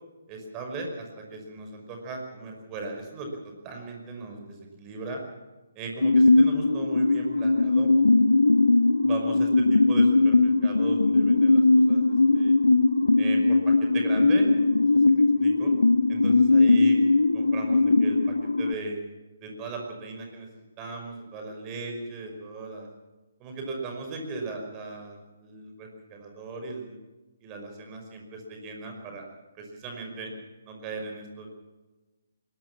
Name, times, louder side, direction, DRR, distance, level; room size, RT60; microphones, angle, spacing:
voice 1, 0.3-5.2 5.8-7.9 9.0-12.0 12.3-12.5 13.2-14.7 15.1-15.7 16.1-17.0 17.3-19.0 19.4-20.5 20.8-22.9 23.4-27.0 27.4-29.2 29.5-30.3 30.6-31.5, right 3 dB, 20° right, 2 dB, 5.5 m, -38 dB
sound 1, 6.0-18.7, left 3 dB, 70° left, 0.7 m, -20 dB
22.5 x 20.5 x 6.1 m, 1.2 s
figure-of-eight pair, 135°, 0 cm